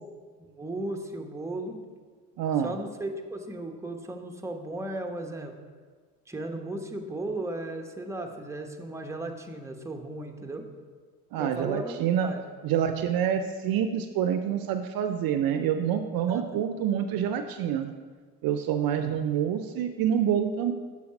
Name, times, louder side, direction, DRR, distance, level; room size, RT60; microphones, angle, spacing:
voice 1, 0.4-1.8 2.6-5.5 6.3-10.7 11.4-12.4 16.3-16.4 19.0-19.2, right 2 dB, 5° right, 3 dB, 0.9 m, -36 dB
voice 2, 2.4-2.7 11.3-12.3 12.6-17.9 18.4-20.7, right 9 dB, 55° right, 8 dB, 0.6 m, -27 dB
6.9 x 4.8 x 5.2 m, 1.5 s
hypercardioid pair, 60°, 42 cm